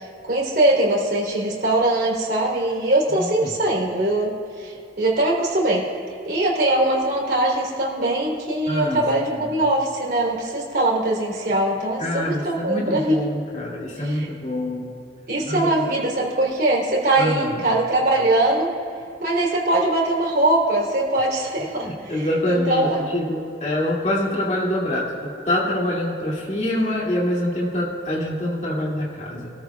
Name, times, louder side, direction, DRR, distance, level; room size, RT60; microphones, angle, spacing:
voice 1, 0.0-5.9 6.3-13.2 14.0-14.3 15.3-18.7 19.2-23.1, right 1 dB, 55° right, -3 dB, 3.6 m, -22 dB
voice 2, 3.1-3.5 8.7-9.5 12.0-14.9 15.4-15.8 17.2-17.7 21.7-29.5, left 1 dB, 40° left, -5 dB, 2.5 m, -25 dB
25.0 x 14.0 x 2.4 m, 2.7 s
head